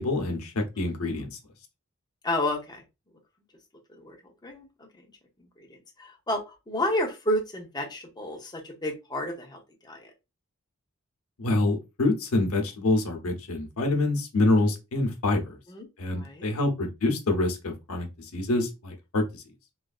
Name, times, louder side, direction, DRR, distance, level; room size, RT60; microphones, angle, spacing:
voice 1, 0.0-1.4 11.4-15.5 16.0-18.1 18.3-19.4, left 2 dB, 80° left, 0.8 m, -26 dB
voice 2, 0.8-1.2 2.2-2.8 3.9-4.2 4.4-4.7 5.0-5.1 5.6-5.7 6.0-10.1 15.7-15.9 16.1-16.5, left 1 dB, 20° left, 0.7 m, -31 dB
3.1 x 2.5 x 2.3 m
head